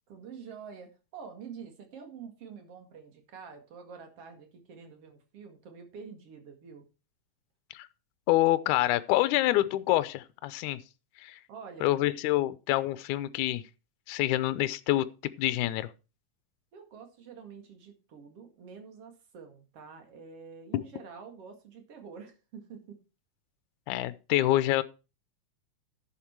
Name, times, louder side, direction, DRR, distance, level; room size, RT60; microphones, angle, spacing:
voice 1, 0.1-6.8 11.5-12.0 16.7-23.0, right 6 dB, 50° right, 2.8 m, -47 dB
voice 2, 8.3-10.8 11.2-11.4 11.8-13.6 14.1-15.9 20.7-20.8 23.9-24.8, left 15 dB, 75° left, 2.0 m, -27 dB
11.0 x 7.4 x 4.6 m
omnidirectional pair, 3.8 m